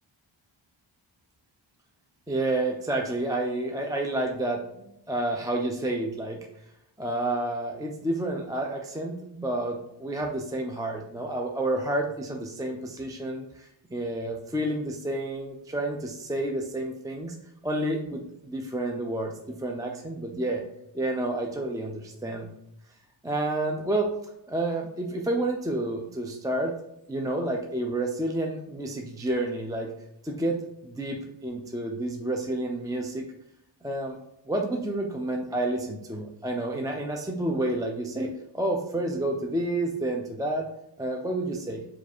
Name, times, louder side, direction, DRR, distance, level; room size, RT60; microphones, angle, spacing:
voice 1, 2.3-6.5 7.0-17.4 17.6-20.6 20.9-22.5 23.2-24.1 24.5-26.7 27.1-29.9 30.2-33.2 33.8-34.2 34.5-40.7 41.0-41.8, right 1 dB, 10° right, 1 dB, 0.4 m, -30 dB
4.6 x 2.4 x 4.2 m, 0.80 s
wide cardioid pair, 70°, 48 cm